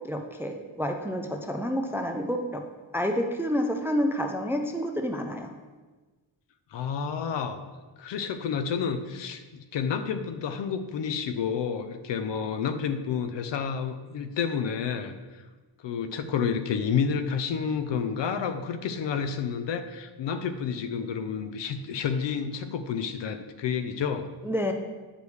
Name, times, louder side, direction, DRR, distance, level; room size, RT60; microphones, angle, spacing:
voice 1, 0.0-2.6 2.9-5.5 24.4-24.7, equal, 5° right, 4 dB, 0.4 m, -29 dB
voice 2, 6.7-7.6 8.0-15.1 15.8-24.3, left 6 dB, 70° left, 9 dB, 0.6 m, -30 dB
8.2 x 5.1 x 3.2 m, 1.3 s
wide cardioid pair, 120°, 45 cm